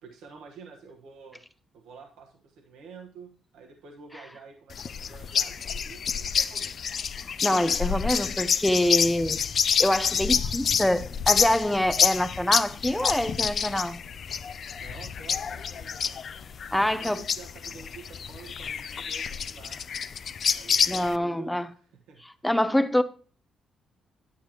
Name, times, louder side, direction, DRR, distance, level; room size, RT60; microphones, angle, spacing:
voice 1, 0.0-1.4 1.7-6.8 14.8-16.2 16.8-19.8 20.5-22.2, right 5 dB, 90° right, 1.3 m, -49 dB
sound 1, 4.7-21.2, left 7 dB, 55° left, 0.4 m, -28 dB
voice 2, 7.4-9.4 9.8-14.0 16.7-17.2 20.9-21.7 22.4-23.0, left 1 dB, 5° left, 0.6 m, -25 dB
10.0 x 8.4 x 2.9 m
cardioid pair, 90°, 0 cm